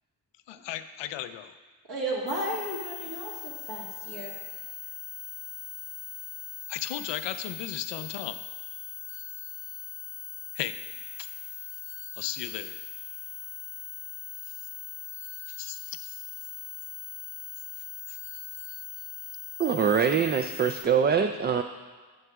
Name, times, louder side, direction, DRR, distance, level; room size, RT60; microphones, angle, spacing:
voice 1, 0.5-1.5 6.7-8.5 10.5-10.9 11.2-11.3 12.1-12.8 14.4-14.5 15.5-16.2 18.1-18.2, left 12 dB, 80° left, 12 dB, 0.5 m, -36 dB
voice 2, 1.9-4.3, right 1 dB, 60° right, -5 dB, 1.8 m, -34 dB
sound 1, 2.3-20.8, left 8 dB, 25° left, 0.9 m, -40 dB
voice 3, 19.6-21.6, right 7 dB, 25° right, 6 dB, 0.3 m, -24 dB
7.2 x 6.3 x 3.5 m, 1.4 s
supercardioid pair, 55°, 43 cm